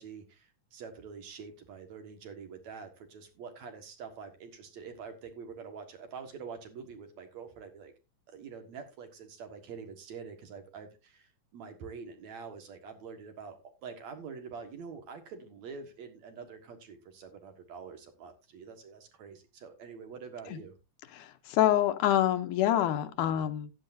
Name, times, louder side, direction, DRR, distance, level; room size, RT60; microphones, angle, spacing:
voice 1, 0.0-7.9 8.3-13.6 13.8-20.7, right 5 dB, 60° right, 6 dB, 2.7 m, -46 dB
voice 2, 21.1-23.7, left 12 dB, 75° left, 10 dB, 2.2 m, -26 dB
15.0 x 10.5 x 2.6 m, 0.27 s
omnidirectional pair, 3.8 m